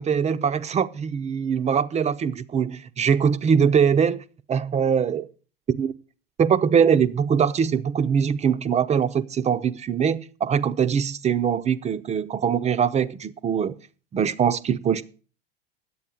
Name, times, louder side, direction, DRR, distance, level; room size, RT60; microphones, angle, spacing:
voice 1, 0.0-5.3 5.8-5.9 6.4-13.8 14.1-15.0, right 7 dB, 20° right, 0.6 m, -22 dB
10.0 x 8.4 x 6.2 m
hypercardioid pair, 80°, 30 cm